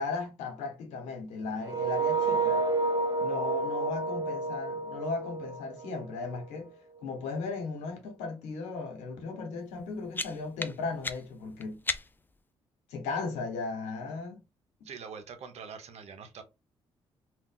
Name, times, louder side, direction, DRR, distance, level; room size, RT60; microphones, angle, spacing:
voice 1, 0.0-2.6 3.2-6.7 7.0-11.8 12.9-14.4, left 4 dB, 90° left, 1.1 m, -36 dB
sound 1, 1.6-6.5, right 3 dB, 35° right, 0.9 m, -30 dB
sound 2, 9.7-12.4, left 3 dB, 15° left, 0.5 m, -38 dB
voice 2, 14.8-16.4, right 6 dB, 70° right, 0.9 m, -44 dB
2.5 x 2.4 x 3.8 m
supercardioid pair, 60°, 11 cm